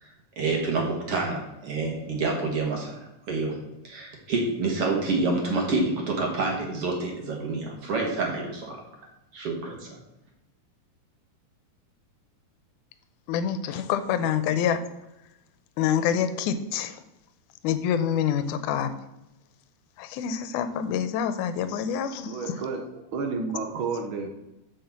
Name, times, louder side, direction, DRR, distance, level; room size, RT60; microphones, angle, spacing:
voice 1, 0.0-3.6 3.8-8.8 9.3-10.0, right 3 dB, 50° right, 0 dB, 2.3 m, -28 dB
voice 2, 13.3-14.8 15.8-17.0 17.6-18.9 20.0-22.6, left 8 dB, 80° left, 11 dB, 2.2 m, -26 dB
voice 3, 22.3-24.3, right 4 dB, 75° right, 3 dB, 1.2 m, -31 dB
6.7 x 6.3 x 7.2 m, 0.90 s
omnidirectional pair, 3.7 m